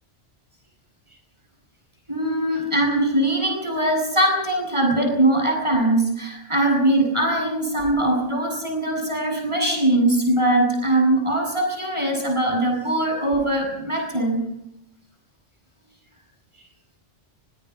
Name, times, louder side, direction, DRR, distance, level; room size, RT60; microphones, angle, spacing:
voice 1, 2.1-14.5, right 1 dB, 25° right, 1 dB, 7.3 m, -21 dB
23.0 x 22.5 x 6.0 m, 0.80 s
omnidirectional pair, 1.2 m